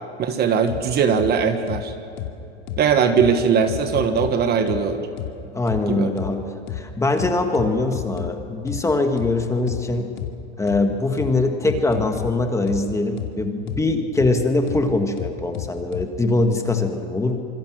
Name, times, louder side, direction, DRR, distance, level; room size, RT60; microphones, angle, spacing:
voice 1, 0.2-1.9 2.8-5.1 5.9-6.1, right 6 dB, 30° right, 8 dB, 1.4 m, -20 dB
sound 1, 0.7-0.8 1.2-1.3 1.7-1.8 2.2-2.3 2.7-2.8 3.2-3.3 3.7-4.3 4.7-4.8 5.2-5.3 5.7-5.8 6.2-6.3 6.7-6.8 7.2-8.3 8.7-8.8 9.2-9.3 9.7-9.8 10.2-10.3 10.7-10.8 11.2-11.3 11.7-12.3 12.7-12.8 13.2-13.3 13.7-13.8 14.2-14.3 14.7-14.8 15.2-16.1, left 12 dB, 65° left, 2.7 m, -30 dB
voice 2, 5.5-10.1 10.6-17.4, left 2 dB, 10° left, 5 dB, 1.6 m, -22 dB
26.5 x 22.5 x 6.3 m, 2.8 s
supercardioid pair, 130°, 34 cm